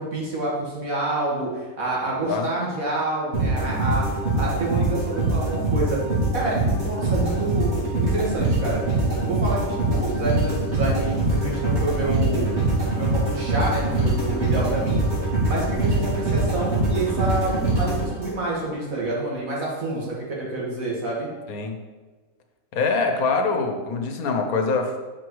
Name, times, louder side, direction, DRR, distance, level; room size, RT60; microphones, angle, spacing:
voice 1, 0.0-4.1 4.4-6.0 6.3-8.8 9.2-12.5 12.9-21.3, right 2 dB, 65° right, -4 dB, 2.2 m, -28 dB
sound 1, 3.3-18.6, right 2 dB, 50° right, 2.0 m, -23 dB
voice 2, 22.7-25.0, left 4 dB, 75° left, 5 dB, 1.3 m, -24 dB
7.7 x 4.6 x 4.7 m, 1.3 s
omnidirectional pair, 1.6 m